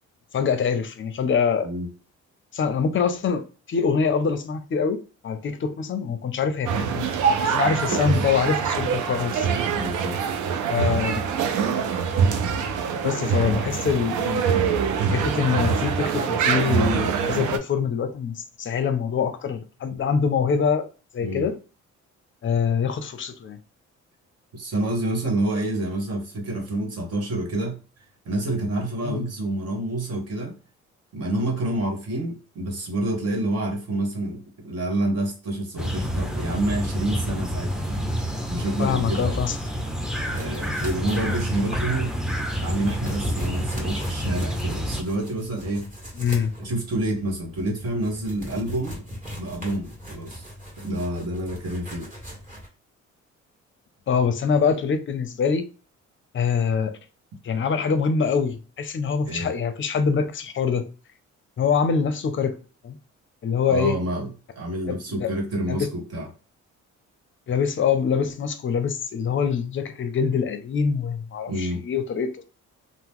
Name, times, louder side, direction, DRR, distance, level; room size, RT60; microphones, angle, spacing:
voice 1, 0.3-1.7 2.5-5.0 5.2-7.1 7.5-9.5 10.7-11.1 13.0-14.5 15.1-20.9 21.1-21.6 22.4-23.6 29.0-29.2 38.8-39.6 46.2-46.5 54.1-55.7 56.3-57.0 57.4-60.9 61.6-62.6 62.8-63.0 63.4-64.0 64.8-65.3 65.7-65.9 67.5-72.4, left 6 dB, 40° left, 0.5 m, -24 dB
sound 1, 6.7-17.6, right 6 dB, 75° right, 0.5 m, -24 dB
voice 2, 7.6-8.0 9.7-10.4 21.2-21.5 24.5-27.8 28.2-30.6 31.1-38.1 38.5-39.4 40.2-42.1 42.6-45.9 46.6-49.0 49.3-50.5 50.8-52.1 59.2-59.5 63.7-66.3 71.5-71.8, right 1 dB, 55° right, 1.3 m, -28 dB
sound 2, 35.8-45.0, equal, ahead, 0.5 m, -28 dB
sound 3, 40.3-52.7, equal, 25° right, 1.6 m, -38 dB
2.8 x 2.0 x 3.5 m
cardioid pair, 90°, 30 cm